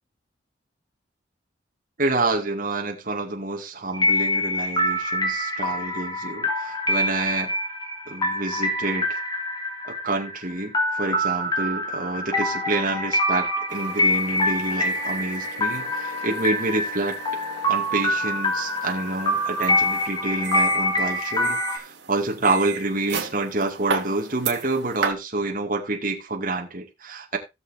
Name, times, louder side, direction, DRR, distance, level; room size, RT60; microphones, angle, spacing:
voice 1, 2.0-7.5 8.1-9.2 9.8-17.2 17.7-27.4, right 2 dB, 45° right, 2.3 m, -28 dB
sound 1, 3.9-21.8, left 1 dB, 25° left, 3.1 m, -25 dB
sound 2, 13.7-25.1, right 5 dB, 75° right, 2.7 m, -35 dB
17.5 x 7.0 x 2.7 m
head